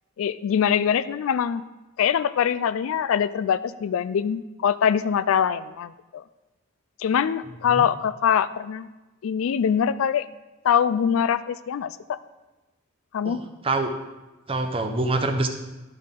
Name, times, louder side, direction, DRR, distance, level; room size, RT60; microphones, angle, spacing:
voice 1, 0.2-1.6 2.0-6.2 7.0-8.9 9.2-10.3 10.6-12.2 13.1-13.4, left 8 dB, 75° left, 15 dB, 0.3 m, -23 dB
voice 2, 13.2-13.9 14.5-15.5, right 2 dB, 25° right, 6 dB, 0.7 m, -25 dB
11.5 x 5.8 x 3.7 m, 1.1 s
head